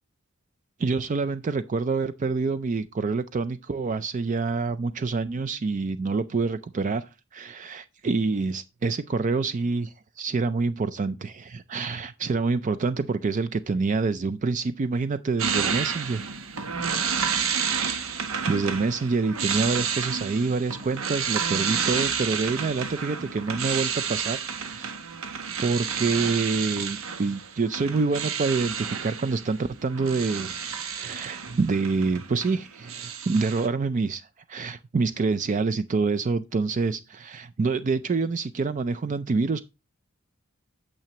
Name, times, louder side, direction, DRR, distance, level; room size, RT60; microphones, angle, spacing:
voice 1, 0.8-16.4 18.5-25.0 25.6-30.5 30.9-39.6, right 4 dB, 40° right, 0.4 m, -27 dB
sound 1, 15.4-32.6 32.9-33.7, right 6 dB, 85° right, 0.9 m, -30 dB
8.9 x 6.7 x 2.8 m
head